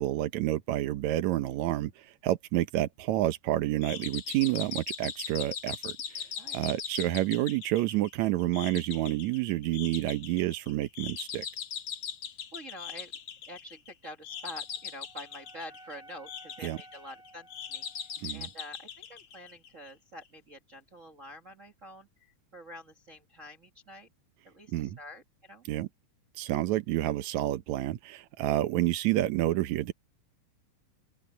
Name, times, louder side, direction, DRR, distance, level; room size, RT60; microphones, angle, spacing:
voice 1, 0.0-6.3 6.5-11.5 16.6-16.8 18.2-18.5 24.7-25.0 25.7-25.9 26.4-29.9, right 15 dB, 70° right, 2.1 m, -29 dB
sound 1, 3.8-19.9, left 8 dB, 55° left, 2.4 m, -40 dB
voice 2, 12.5-13.1 13.5-24.1 24.4-25.6, left 1 dB, 40° right, 1.2 m, -47 dB
Wind instrument woodwind instrument, 14.3-18.5, right 1 dB, ahead, 2.1 m, -55 dB
open air
omnidirectional pair, 3.6 m